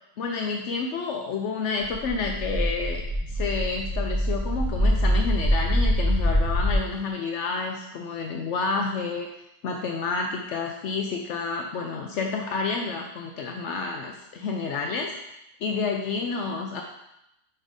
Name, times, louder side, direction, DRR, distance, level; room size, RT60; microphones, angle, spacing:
voice 1, 0.2-3.0 3.3-9.3 9.6-15.3 15.6-16.8, left 4 dB, 70° left, 2 dB, 0.9 m, -29 dB
sound 1, 1.9-6.7, equal, 80° right, 1.8 m, -24 dB
5.4 x 4.7 x 4.0 m, 0.84 s
omnidirectional pair, 1.3 m